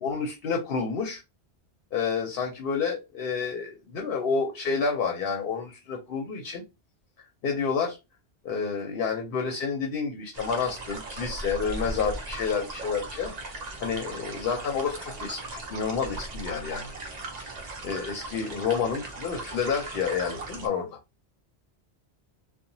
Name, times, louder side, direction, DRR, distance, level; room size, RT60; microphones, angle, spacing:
voice 1, 0.0-1.2 1.9-6.6 7.4-8.0 8.4-13.3 13.8-16.9 17.4-17.5 17.8-20.9, left 5 dB, 60° left, 3 dB, 0.7 m, -29 dB
sound 1, 10.3-20.7, right 2 dB, 45° right, 0.7 m, -38 dB
2.8 x 2.1 x 2.6 m, 0.25 s
omnidirectional pair, 1.1 m